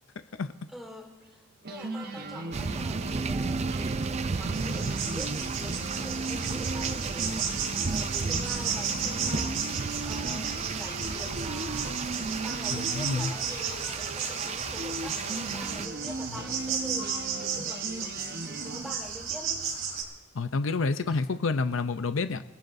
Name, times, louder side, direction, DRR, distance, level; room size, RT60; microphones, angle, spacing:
voice 1, 0.7-7.3 7.8-18.1 18.4-19.7 21.1-21.2, equal, ahead, 0 dB, 3.1 m, -45 dB
sound 1, 1.2-1.3 1.6-18.9, right 2 dB, 50° right, 1.2 m, -38 dB
sound 2, 2.5-15.9, right 4 dB, 35° right, 0.4 m, -34 dB
sound 3, 4.5-20.0, right 6 dB, 75° right, 4.0 m, -34 dB
voice 2, 12.9-13.3 20.3-22.4, left 4 dB, 70° left, 10 dB, 0.6 m, -28 dB
27.5 x 17.0 x 2.7 m, 1.1 s
head